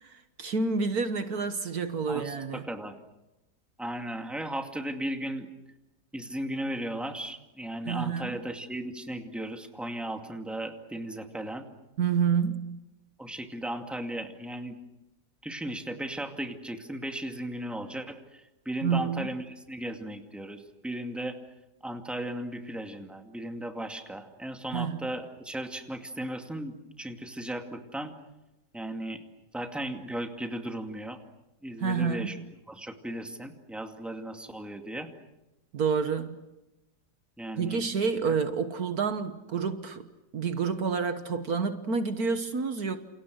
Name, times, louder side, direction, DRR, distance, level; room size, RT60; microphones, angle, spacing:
voice 1, 0.0-2.6 7.8-8.4 12.0-12.8 18.8-19.3 24.7-25.0 31.8-32.4 35.7-36.4 37.6-40.1 40.3-43.0, right 5 dB, 60° right, 1.7 m, -29 dB
voice 2, 2.1-3.0 3.8-5.5 6.1-11.7 13.2-14.8 15.4-21.4 21.8-28.1 28.7-29.2 29.5-31.2 31.6-32.4 32.7-35.1 37.4-37.8 38.3-38.4, right 1 dB, ahead, 2.2 m, -36 dB
29.5 x 28.5 x 6.4 m
omnidirectional pair, 1.8 m